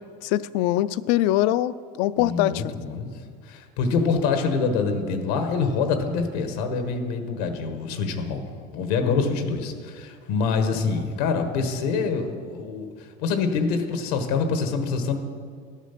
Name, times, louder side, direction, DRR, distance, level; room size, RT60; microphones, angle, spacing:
voice 1, 0.0-2.7 9.0-9.3, left 14 dB, 70° left, 17 dB, 0.4 m, -24 dB
voice 2, 2.2-3.1 3.5-8.4 8.7-15.2, left 4 dB, 90° left, 6 dB, 1.3 m, -25 dB
12.5 x 7.2 x 5.8 m, 2.1 s
cardioid pair, 155°, 20 cm